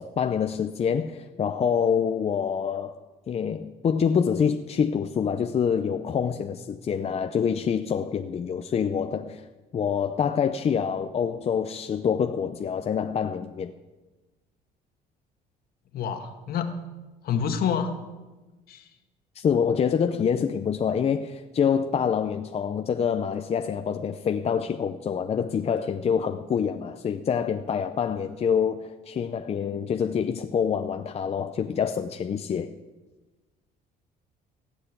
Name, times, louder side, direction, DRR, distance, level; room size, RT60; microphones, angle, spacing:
voice 1, 0.0-2.9 3.3-9.4 9.7-13.7 19.3-32.7, left 7 dB, 40° left, 0.7 m, -26 dB
voice 2, 15.9-16.8 17.2-18.0 18.7-18.9, left 7 dB, 65° left, 1.7 m, -28 dB
15.5 x 8.3 x 8.2 m
cardioid pair, 110°, 17 cm